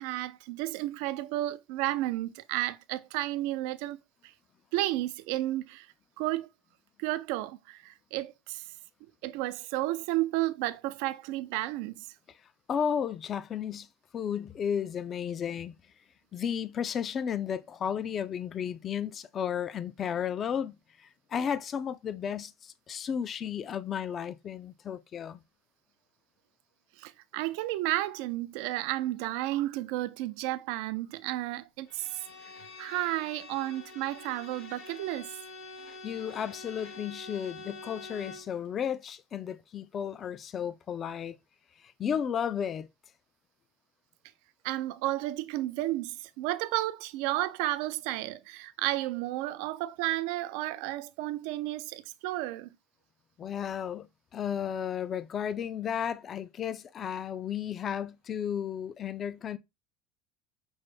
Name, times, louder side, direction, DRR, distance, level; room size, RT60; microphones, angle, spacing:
voice 1, 0.0-4.0 4.7-5.9 6.2-6.5 7.0-8.7 9.2-12.1 27.0-32.1 32.8-35.3 44.6-52.7, right 16 dB, 75° right, 0.3 m, -32 dB
voice 2, 12.7-13.9 14.1-15.7 16.3-25.4 36.0-41.4 41.8-42.9 53.4-54.1 54.3-59.6, left 8 dB, 35° left, 0.3 m, -33 dB
Bowed string instrument, 31.9-38.6, left 3 dB, 65° left, 1.2 m, -46 dB
5.3 x 2.0 x 3.2 m
supercardioid pair, 125°, 0 cm